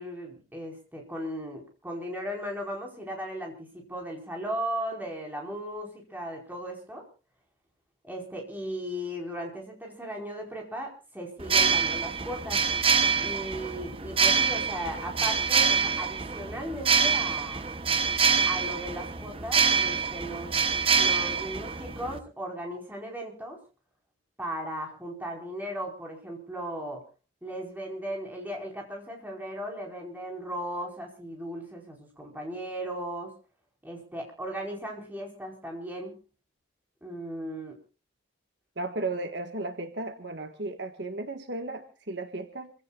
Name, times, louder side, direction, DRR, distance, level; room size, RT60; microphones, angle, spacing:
voice 1, 0.0-7.0 8.0-12.6 13.2-17.7 18.5-20.5 20.9-23.6 24.4-27.0 27.4-33.3 33.8-36.2 37.0-37.8, equal, 10° right, 0 dB, 4.9 m, -37 dB
sound 1, 11.4-22.2, right 6 dB, 30° right, 0.9 m, -26 dB
voice 2, 38.8-42.7, right 2 dB, 60° right, 6 dB, 1.7 m, -35 dB
28.0 x 16.5 x 2.5 m, 0.34 s
head